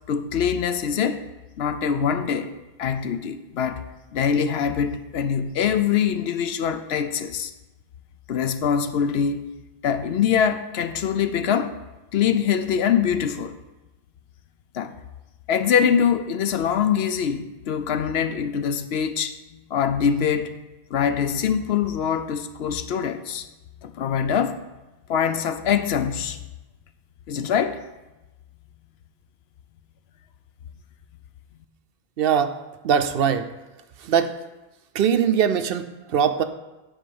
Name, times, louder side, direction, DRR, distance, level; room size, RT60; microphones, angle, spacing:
voice 1, 0.1-1.3 1.6-2.5 2.8-3.8 4.1-7.5 8.3-9.4 9.8-11.8 12.1-13.6 14.7-14.9 15.5-20.5 20.9-23.5 23.8-24.6 25.1-26.4 27.3-27.8, left 7 dB, 80° left, 0.9 m, -23 dB
voice 2, 32.2-32.6 32.8-33.5 34.0-34.3 34.9-36.4, right 8 dB, 70° right, 0.8 m, -21 dB
9.7 x 4.3 x 7.0 m
omnidirectional pair, 1.0 m